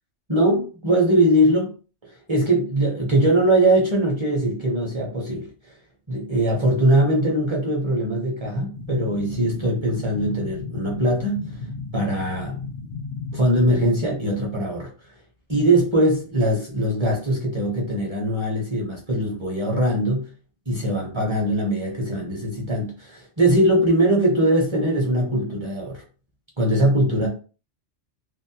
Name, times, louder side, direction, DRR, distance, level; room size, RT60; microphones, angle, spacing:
voice 1, 0.3-1.7 2.0-5.5 6.1-11.4 11.9-12.6 13.3-14.9 15.5-20.3 20.7-26.0 26.6-27.3, right 1 dB, 30° right, 0.6 m, -21 dB
sound 1, 8.7-13.8, left 4 dB, 65° left, 0.7 m, -34 dB
2.5 x 2.1 x 2.7 m
omnidirectional pair, 1.2 m